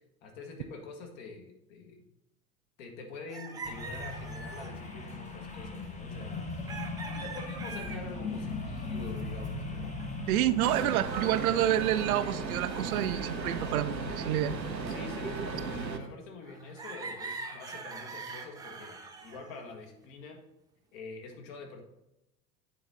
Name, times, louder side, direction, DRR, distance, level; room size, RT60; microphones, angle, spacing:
voice 1, 0.2-2.0 2.8-6.5 7.1-10.0 14.9-20.4 20.9-21.8, left 3 dB, 50° left, 3 dB, 1.6 m, -46 dB
sound 1, 3.3-4.8 6.7-8.1 8.7-9.5 10.0-10.2 10.7-11.9 12.4-13.9 14.7-16.1 16.4-19.7, right 4 dB, 10° right, 0.4 m, -44 dB
sound 2, 3.6-10.9, left 3 dB, 15° left, 1.0 m, -38 dB
voice 2, 10.3-14.5, right 12 dB, 60° right, 14 dB, 0.6 m, -28 dB
sound 3, 10.6-16.0, right 4 dB, 90° right, 0.8 m, -35 dB
9.3 x 4.2 x 3.9 m, 0.88 s
figure-of-eight pair, 80°, 49 cm